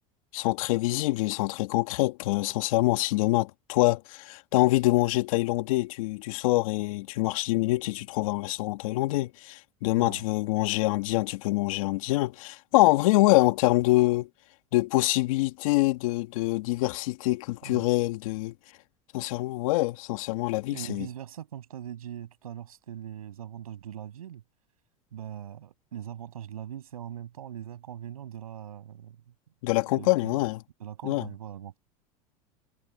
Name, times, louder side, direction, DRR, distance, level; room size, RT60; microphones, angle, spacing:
voice 1, 0.3-14.3 14.7-18.5 19.1-21.1 29.6-30.6 31.0-31.3, left 20 dB, 70° left, 2.1 m, -25 dB
voice 2, 10.0-10.3 17.6-17.9 20.7-24.4 25.1-29.3 29.8-30.4 30.8-31.8, right 10 dB, 90° right, 7.4 m, -41 dB
hypercardioid pair, 95°, 18 cm